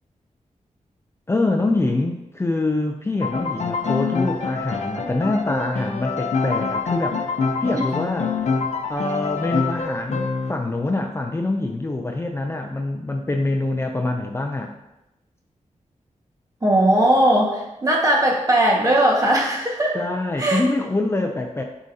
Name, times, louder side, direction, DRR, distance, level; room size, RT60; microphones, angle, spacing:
voice 1, 1.3-7.2 7.6-8.4 8.9-14.7 19.9-21.6, left 2 dB, 20° left, 3 dB, 0.5 m, -25 dB
Piano, 3.2-10.5, left 4 dB, 60° left, 0.7 m, -25 dB
voice 2, 16.6-20.0 20.4-20.6, right 1 dB, 25° right, -2 dB, 1.6 m, -18 dB
10.0 x 4.9 x 2.8 m, 0.92 s
wide cardioid pair, 115°, 13 cm